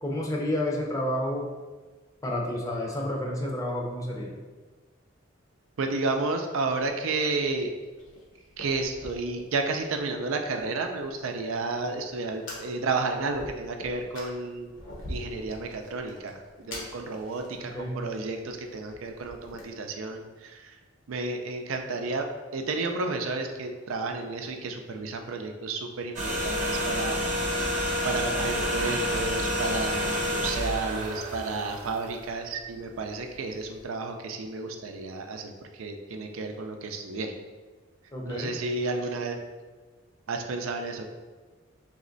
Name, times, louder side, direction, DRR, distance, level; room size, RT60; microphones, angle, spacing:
voice 1, 0.0-1.4 2.2-4.3 17.6-18.0 38.1-38.6, left 1 dB, 15° left, -1 dB, 0.6 m, -30 dB
voice 2, 5.8-7.7 8.6-14.7 15.1-20.8 21.1-22.2 22.5-27.3 28.0-37.3 38.2-39.4 40.3-41.0, right 3 dB, 90° right, 4 dB, 0.5 m, -32 dB
Fire, 6.7-19.6, left 1 dB, 75° left, 1.1 m, -46 dB
sound 1, 26.2-32.5 32.8-32.9, equal, 40° right, 0.9 m, -29 dB
3.4 x 3.1 x 3.9 m, 1.4 s
head